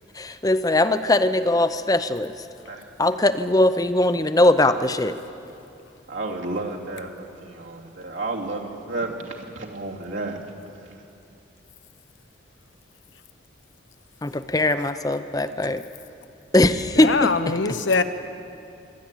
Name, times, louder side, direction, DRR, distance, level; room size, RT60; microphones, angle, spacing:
voice 1, 0.1-2.3 3.0-5.1 14.2-15.8 16.5-17.3, left 1 dB, 20° left, 11 dB, 0.6 m, -20 dB
voice 2, 6.1-10.4, right 2 dB, 80° right, -2 dB, 2.8 m, -32 dB
voice 3, 17.0-18.0, left 4 dB, 70° left, 10 dB, 1.0 m, -22 dB
25.0 x 11.5 x 9.0 m, 2.7 s
head